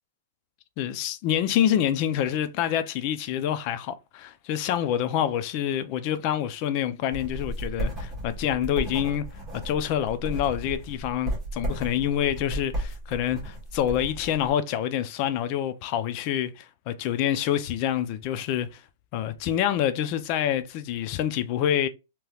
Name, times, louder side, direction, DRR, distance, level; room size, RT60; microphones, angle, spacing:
voice 1, 0.8-9.2 9.6-18.8 19.1-21.9, left 10 dB, 30° left, 0.4 m, -27 dB
sound 1, 7.1-14.5, equal, 5° right, 1.2 m, -34 dB
3.2 x 2.9 x 2.3 m
hypercardioid pair, 175°, 0 cm